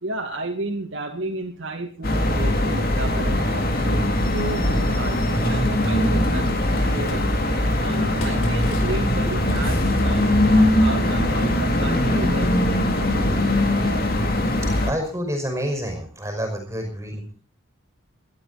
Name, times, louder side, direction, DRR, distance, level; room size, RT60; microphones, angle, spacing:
voice 1, 0.0-7.3 7.8-12.6, right 2 dB, 60° right, 0 dB, 2.4 m, -33 dB
sound 1, 2.0-14.9, left 1 dB, 45° left, 2.7 m, -21 dB
Computer keyboard, 4.3-4.6 5.5-7.2 7.8-10.5, left 3 dB, 85° left, 5.1 m, -43 dB
voice 2, 14.8-17.3, equal, 15° right, 4 dB, 5.5 m, -28 dB
21.5 x 12.5 x 4.2 m, 0.37 s
head